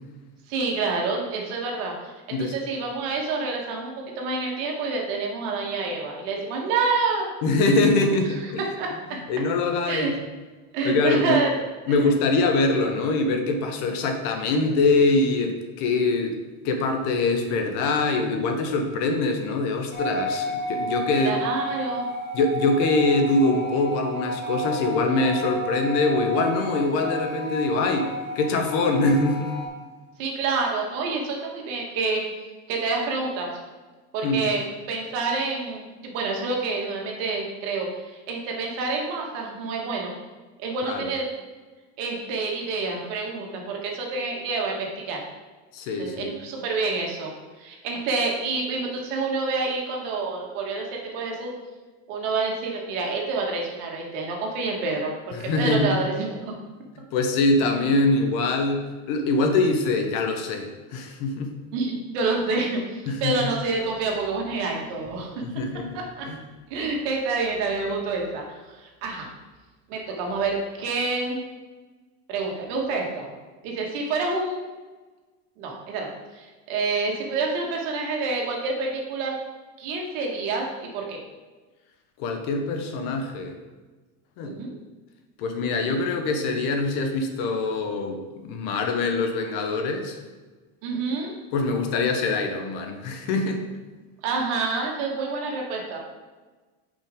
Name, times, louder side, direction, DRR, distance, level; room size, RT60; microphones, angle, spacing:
voice 1, 0.5-2.1 2.4-7.3 8.8-8.9 9.9-10.1 10.7-11.6 11.9-12.0 21.2-22.1 30.2-32.2 32.7-33.6 34.1-40.2 40.6-41.3 42.0-45.2 46.0-47.3 47.6-51.5 52.1-55.1 55.6-56.4 61.7-65.4 65.9-66.3 66.7-69.3 69.9-71.4 72.3-73.3 73.6-74.6 75.6-76.1 76.3-79.4 79.8-81.2 84.4-84.8 90.8-91.3 94.2-96.0, right 3 dB, 70° right, 0 dB, 1.9 m, -28 dB
voice 2, 7.4-8.6 9.3-10.1 10.8-11.4 11.9-16.4 16.6-21.4 22.3-29.5 34.2-34.5 40.8-41.1 45.7-46.3 55.3-55.9 57.1-61.5 63.1-63.5 65.4-66.0 66.2-66.4 82.2-83.6 84.4-84.5 85.4-90.2 91.5-93.6, left 3 dB, 60° left, 5 dB, 1.1 m, -24 dB
sound 1, 19.9-29.7, right 1 dB, 25° left, 1.0 m, -31 dB
8.5 x 5.3 x 3.8 m, 1.3 s
cardioid pair, 165°, 39 cm